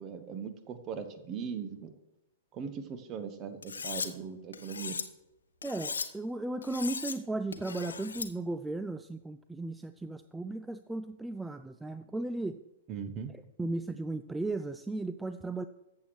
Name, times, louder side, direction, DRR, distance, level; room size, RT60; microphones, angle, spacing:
voice 1, 0.0-1.9 2.5-5.0 12.9-13.4, right 6 dB, 30° right, 9 dB, 1.0 m, -39 dB
Cutlery silverware, 3.6-4.1 4.5-5.0 5.6-6.1 6.6-7.2 7.5-8.3, left 5 dB, 70° left, 0.8 m, -37 dB
voice 2, 5.6-12.6 13.6-15.6, right 2 dB, 5° right, 10 dB, 0.3 m, -35 dB
14.0 x 7.5 x 3.2 m, 0.93 s
figure-of-eight pair, 110°, 0 cm